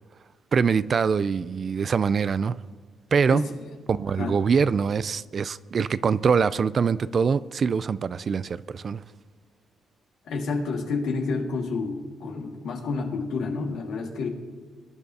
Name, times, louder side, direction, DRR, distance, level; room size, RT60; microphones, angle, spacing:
voice 1, 0.5-2.6 3.1-3.4 3.9-9.0, right 6 dB, 45° right, 0.3 m, -23 dB
voice 2, 10.3-14.3, left 4 dB, 75° left, 1.7 m, -29 dB
22.5 x 10.5 x 2.7 m
cardioid pair, 90°, 0 cm